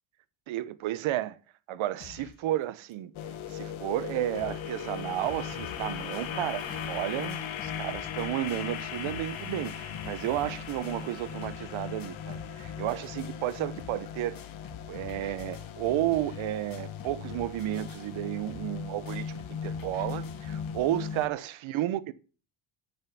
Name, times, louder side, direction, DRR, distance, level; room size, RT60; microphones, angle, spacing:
voice 1, 0.5-1.4 1.7-3.1 3.5-14.4 14.9-22.1, right 14 dB, 70° right, 1.0 m, -32 dB
sound 1, 2.0-2.5 2.9-3.0 3.2-3.3 3.8-3.9 4.1-4.7 5.0-20.8, left 7 dB, 40° left, 1.6 m, -49 dB
sound 2, 3.1-21.3, left 8 dB, 70° left, 1.5 m, -38 dB
Waves surf, 4.8-11.5, right 5 dB, 35° right, 1.6 m, -52 dB
8.2 x 7.4 x 6.9 m
cardioid pair, 110°, 49 cm